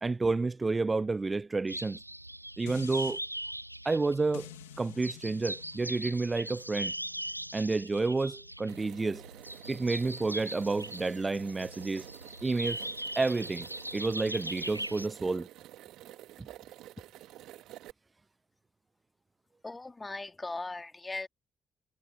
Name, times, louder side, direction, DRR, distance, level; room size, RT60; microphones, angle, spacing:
voice 1, 0.0-2.0 2.6-3.2 3.8-4.5 4.8-6.9 7.5-9.2 9.7-12.1 12.4-12.8 13.2-15.5 16.4-16.5, right 3 dB, 25° right, 0.8 m, -30 dB
sound 1, 1.7-15.1, right 1 dB, 90° right, 0.4 m, -40 dB
sound 2, 2.7-3.2 4.3-9.5 9.9-10.0, left 21 dB, 75° left, 1.8 m, -52 dB
sound 3, 8.7-17.9, right 15 dB, 60° right, 1.9 m, -50 dB
voice 2, 19.6-21.3, left 3 dB, 20° left, 3.5 m, -38 dB
figure-of-eight pair, 40°, 0 cm